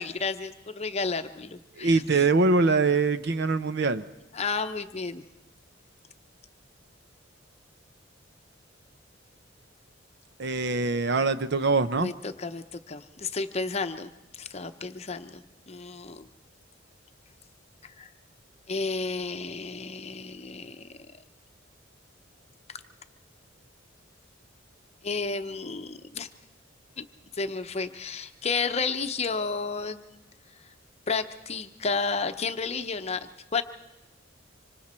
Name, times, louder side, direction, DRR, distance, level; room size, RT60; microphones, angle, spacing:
voice 1, 0.0-2.0 4.3-5.2 12.0-16.3 17.8-18.1 18.7-20.9 22.7-22.8 25.0-26.3 27.0-27.1 27.3-30.2 31.1-33.6, left 4 dB, 30° left, 9 dB, 0.8 m, -32 dB
voice 2, 1.8-4.1 10.4-12.1, right 3 dB, 60° right, 12 dB, 0.7 m, -23 dB
25.5 x 25.0 x 4.4 m, 0.96 s
head